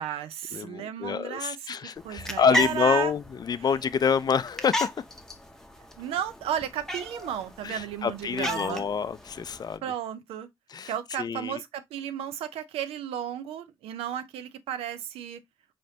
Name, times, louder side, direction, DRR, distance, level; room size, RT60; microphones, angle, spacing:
voice 1, 0.0-3.1 3.6-3.8 6.0-8.9 9.8-10.5 10.9-15.4, right 10 dB, 80° right, 0.5 m, -34 dB
voice 2, 0.5-4.9 7.6-9.8 10.7-10.9 11.2-11.6, left 6 dB, 45° left, 0.4 m, -27 dB
sound 1, 2.0-9.8, left 1 dB, 5° left, 0.8 m, -35 dB
4.2 x 3.0 x 2.7 m
supercardioid pair, 55°, 10 cm